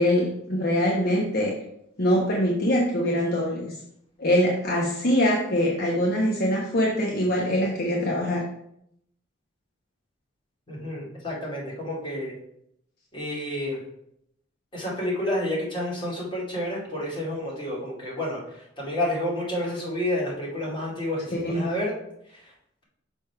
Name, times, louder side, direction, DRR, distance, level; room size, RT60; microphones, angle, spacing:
voice 1, 0.0-1.5 2.0-3.7 4.2-8.4 21.4-21.7, equal, 55° left, -3 dB, 1.1 m, -23 dB
voice 2, 10.7-12.3 13.1-13.8 14.7-21.9 22.3-22.5, left 1 dB, 25° left, -5 dB, 2.6 m, -30 dB
6.1 x 3.6 x 5.7 m, 0.74 s
head